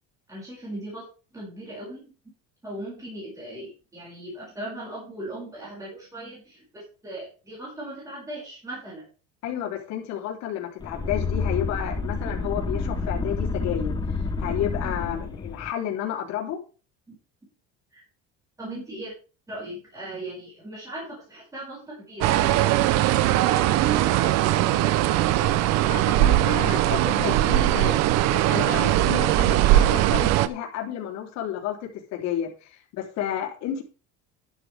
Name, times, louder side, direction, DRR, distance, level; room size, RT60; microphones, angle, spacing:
voice 1, 0.3-1.0 1.3-2.1 2.6-9.0 17.9-18.0 18.6-19.1 19.5-22.8 23.2-25.0, right 1 dB, 10° right, -7 dB, 6.5 m, -38 dB
voice 2, 9.4-14.0 14.4-16.6 25.9-27.9 28.3-33.8, left 10 dB, 55° left, 0 dB, 3.7 m, -31 dB
sound 1, 10.8-15.7, left 3 dB, 15° left, 0.8 m, -29 dB
sound 2, 22.2-30.5, right 14 dB, 55° right, 0.8 m, -20 dB
12.0 x 11.0 x 3.6 m, 0.36 s
cardioid pair, 175°, 32 cm